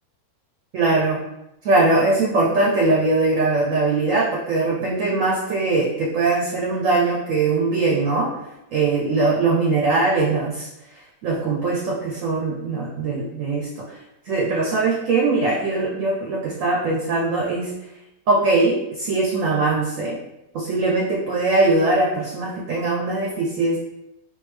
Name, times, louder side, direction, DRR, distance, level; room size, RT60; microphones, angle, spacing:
voice 1, 0.7-1.2 1.6-8.3 8.7-10.7 11.2-13.8 14.2-17.7 18.3-20.2 20.5-23.8, right 3 dB, 65° right, -3 dB, 0.9 m, -21 dB
3.6 x 2.7 x 3.2 m, 0.89 s
omnidirectional pair, 1.7 m